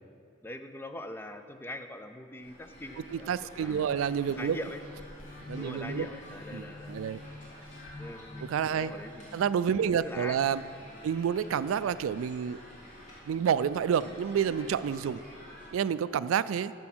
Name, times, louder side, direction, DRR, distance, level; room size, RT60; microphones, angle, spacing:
voice 1, 0.4-3.8 4.3-4.8 5.5-7.5 8.0-9.4 9.7-10.4 10.9-11.0 15.1-15.2, left 1 dB, 10° left, 8 dB, 0.4 m, -43 dB
sound 1, 2.4-15.7, equal, 40° left, 2.4 m, -50 dB
voice 2, 3.1-4.6 5.5-6.1 6.5-7.2 8.4-8.9 9.3-10.6 11.0-12.6 13.3-15.2 15.7-16.7, right 8 dB, 85° right, 16 dB, 0.3 m, -29 dB
sound 2, 4.0-11.2 11.7-11.8, left 2 dB, 90° left, 1.4 m, -48 dB
9.6 x 7.0 x 6.1 m, 2.4 s
head